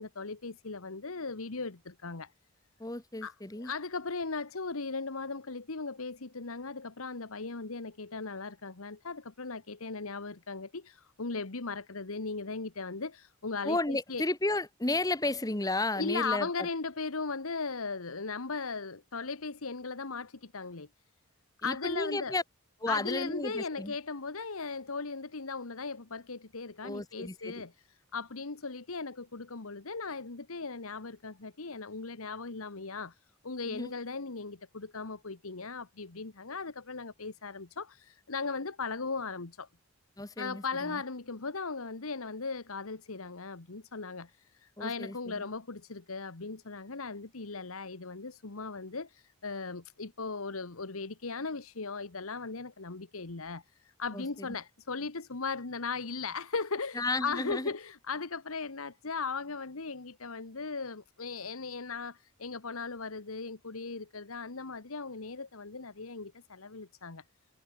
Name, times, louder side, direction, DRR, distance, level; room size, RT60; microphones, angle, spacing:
voice 1, 0.0-2.3 3.2-14.2 16.0-20.9 21.6-22.3 22.9-33.2 33.4-39.7 40.4-67.2, left 4 dB, 85° left, 1.4 m, -38 dB
voice 2, 2.8-3.7 13.6-16.7 21.6-22.4 22.8-23.9 26.8-27.6 33.7-33.9 40.2-41.0 44.8-45.5 54.1-54.6 56.9-57.7, left 2 dB, 15° left, 1.1 m, -33 dB
head